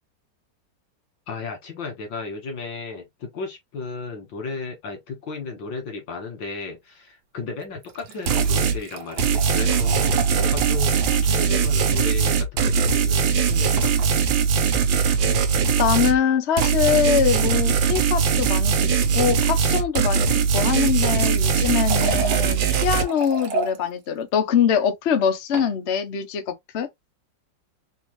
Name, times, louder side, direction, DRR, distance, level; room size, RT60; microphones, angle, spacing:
voice 1, 1.3-13.9, left 4 dB, 85° left, 2.2 m, -34 dB
sound 1, 7.6-11.3 11.6-11.7 12.0-12.1 13.8-14.1 15.1-15.3 16.6-16.9 20.6-23.8 25.2-25.7, right 4 dB, 70° right, 1.4 m, -33 dB
sound 2, 8.3-8.8 9.2-16.2 16.6-23.0, right 6 dB, 85° right, 1.5 m, -20 dB
voice 2, 15.8-20.3 20.5-26.9, left 8 dB, 50° left, 0.8 m, -23 dB
4.4 x 2.4 x 3.0 m
omnidirectional pair, 2.0 m